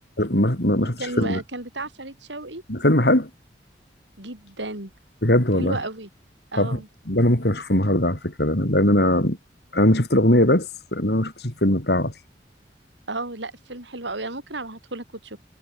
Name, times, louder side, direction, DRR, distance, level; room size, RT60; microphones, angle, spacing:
voice 1, 0.2-1.4 2.7-3.3 5.2-5.8 6.6-6.8 7.1-9.4 9.7-12.1, left 1 dB, 65° left, 4.4 m, -20 dB
voice 2, 1.0-2.6 4.2-4.9 5.6-6.1 6.5-6.9 13.1-15.4, right 2 dB, 90° right, 7.3 m, -33 dB
head